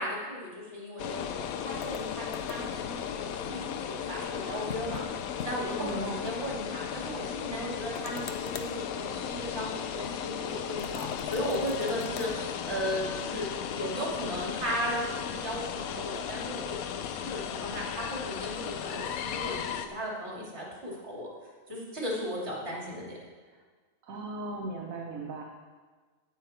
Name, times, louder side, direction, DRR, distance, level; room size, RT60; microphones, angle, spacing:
voice 1, 0.0-5.0 5.4-21.3 21.7-23.2, equal, 50° right, -4 dB, 3.3 m, -36 dB
sound 1, 1.0-19.9, left 8 dB, 85° left, 1.1 m, -36 dB
sound 2, 1.8-2.8 4.7-5.1 5.4-5.5 5.9-6.0 8.0-8.7 10.8-12.3, left 6 dB, 55° left, 0.9 m, -41 dB
voice 2, 5.8-6.3 24.0-25.4, right 2 dB, 75° right, 0 dB, 1.4 m, -37 dB
17.0 x 5.8 x 4.4 m, 1.4 s
omnidirectional pair, 1.5 m